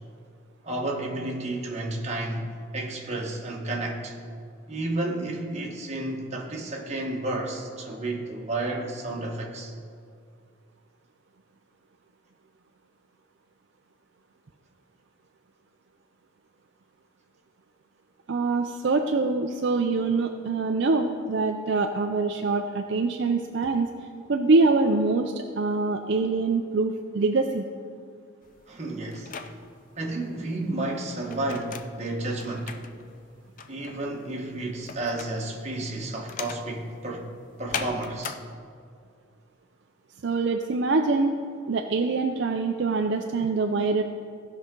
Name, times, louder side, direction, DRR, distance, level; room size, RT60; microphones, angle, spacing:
voice 1, 0.6-4.1 4.7-9.7 28.7-29.3 29.9-32.8 33.7-37.3 37.6-38.4, right 2 dB, 35° right, -1 dB, 1.3 m, -31 dB
voice 2, 18.3-23.9 24.3-27.6 40.2-41.4 41.7-44.0, right 3 dB, 55° right, 4 dB, 0.4 m, -24 dB
sound 1, 28.4-38.4, left 6 dB, 40° left, 0.4 m, -40 dB
16.5 x 5.7 x 3.8 m, 2.2 s
head